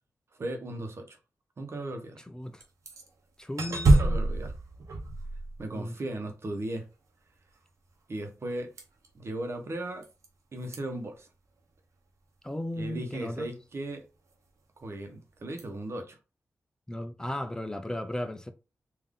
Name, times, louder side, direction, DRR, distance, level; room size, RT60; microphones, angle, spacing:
voice 1, 0.3-1.2 1.6-2.2 3.7-4.5 5.6-6.9 8.1-8.7 9.1-10.1 10.5-11.3 12.8-14.0 14.8-16.2, right 1 dB, 55° right, 1.0 m, -37 dB
voice 2, 2.3-2.6 3.4-4.2 5.7-6.0 12.4-13.5 16.9-18.5, left 1 dB, 15° left, 0.5 m, -35 dB
sound 1, 2.6-3.1 3.6-6.0 8.8-9.1 10.0-10.3 10.6-10.8 15.6-15.7, right 2 dB, 80° right, 1.0 m, -25 dB
3.6 x 2.7 x 3.6 m
cardioid pair, 60°, 5 cm